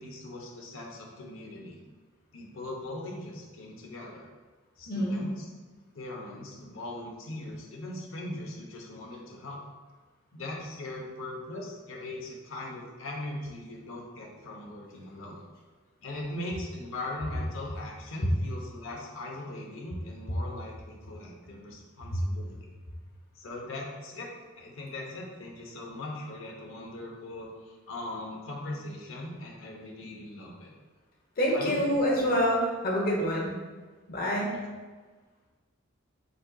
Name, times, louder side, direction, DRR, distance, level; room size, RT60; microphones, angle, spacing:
voice 1, 0.0-1.8 2.3-4.3 4.8-5.4 5.9-9.6 10.3-15.4 16.0-22.6 23.4-24.3 24.6-30.7 31.5-32.4 34.5-34.6, left 1 dB, 80° left, -1 dB, 0.8 m, -40 dB
voice 2, 4.9-5.3 22.1-22.2 31.4-33.5 34.1-34.5, equal, 45° left, -2 dB, 0.9 m, -27 dB
5.3 x 3.9 x 2.3 m, 1.4 s
head